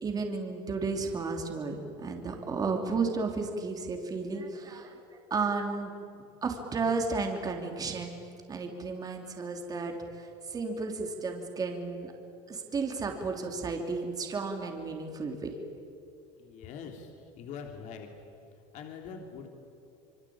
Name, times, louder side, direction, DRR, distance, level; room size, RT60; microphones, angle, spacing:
voice 1, 0.0-5.9 6.4-8.1 8.5-12.1 12.5-15.5, right 4 dB, 25° right, 3 dB, 3.3 m, -33 dB
voice 2, 16.4-18.1 18.7-19.5, left 6 dB, 55° left, 3 dB, 3.4 m, -43 dB
26.5 x 24.0 x 8.8 m, 2.6 s
supercardioid pair, 125°, 15 cm